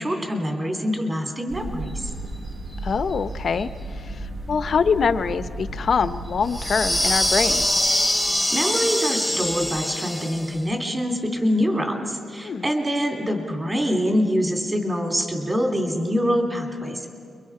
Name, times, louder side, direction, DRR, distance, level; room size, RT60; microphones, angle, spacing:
voice 1, 0.0-2.1 8.5-17.1, equal, 20° right, 1 dB, 3.3 m, -25 dB
sound 1, 1.5-7.7, right 2 dB, 65° right, 4.9 m, -34 dB
voice 2, 2.8-3.7 4.1-4.2 4.5-7.7 12.4-12.7, left 6 dB, 55° left, 12 dB, 0.8 m, -23 dB
sound 2, 6.5-10.6, left 1 dB, ahead, 1.5 m, -23 dB
29.5 x 23.5 x 4.8 m, 2.2 s
cardioid pair, 115°, 0 cm